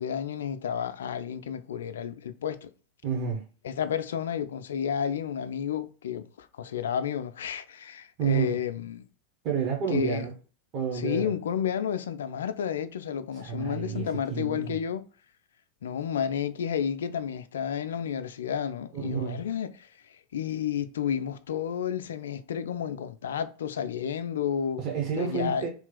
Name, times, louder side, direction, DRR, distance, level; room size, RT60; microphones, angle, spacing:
voice 1, 0.0-2.7 3.6-9.0 9.9-10.3 10.9-15.1 15.8-24.8 25.2-25.7, left 8 dB, 70° left, 0.3 m, -31 dB
voice 2, 3.0-3.4 8.2-8.6 9.4-10.3 10.7-11.3 13.4-14.8 18.9-19.4 24.8-25.7, right 7 dB, 45° right, 1.0 m, -30 dB
3.1 x 2.3 x 3.8 m
figure-of-eight pair, 85°, 0 cm